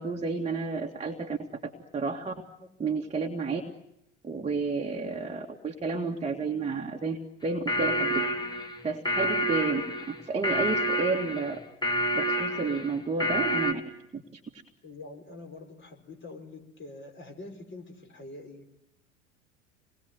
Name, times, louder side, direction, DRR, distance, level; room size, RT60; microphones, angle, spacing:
voice 1, 0.0-2.3 2.8-3.6 4.2-7.2 7.4-8.2 8.8-9.8 10.1-11.6 12.1-13.8 14.1-14.2 14.5-14.6, right 4 dB, 15° right, 1 dB, 2.1 m, -31 dB
sound 1, 7.4-13.7, equal, 10° left, 2.4 m, -28 dB
voice 2, 14.8-18.7, left 2 dB, 30° left, 4 dB, 5.8 m, -45 dB
28.0 x 21.0 x 9.5 m, 0.85 s
figure-of-eight pair, 80°, 38 cm